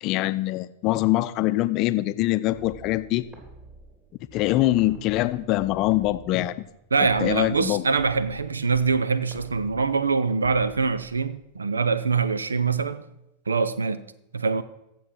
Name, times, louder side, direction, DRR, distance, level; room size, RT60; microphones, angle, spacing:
voice 1, 0.0-3.3 4.3-6.6 7.0-7.8, left 16 dB, 40° left, 0.7 m, -23 dB
sound 1, 2.5-11.6, right 2 dB, 20° right, 3.5 m, -49 dB
voice 2, 6.9-13.0 13.5-14.0 14.3-14.6, right 4 dB, 75° right, 0.7 m, -24 dB
15.5 x 7.2 x 6.1 m
figure-of-eight pair, 90°, 0 cm